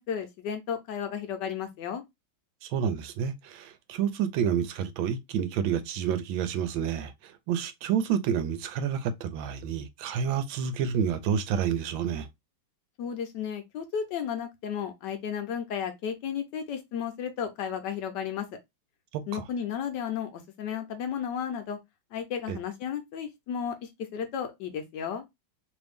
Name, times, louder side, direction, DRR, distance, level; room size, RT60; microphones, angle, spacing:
voice 1, 0.0-2.0 13.0-18.5 19.3-21.8 22.1-25.2, left 8 dB, 70° left, 1.1 m, -33 dB
voice 2, 2.6-12.3 19.1-19.4 22.5-22.6, right 8 dB, 80° right, 1.3 m, -29 dB
3.2 x 2.6 x 3.4 m
omnidirectional pair, 2.2 m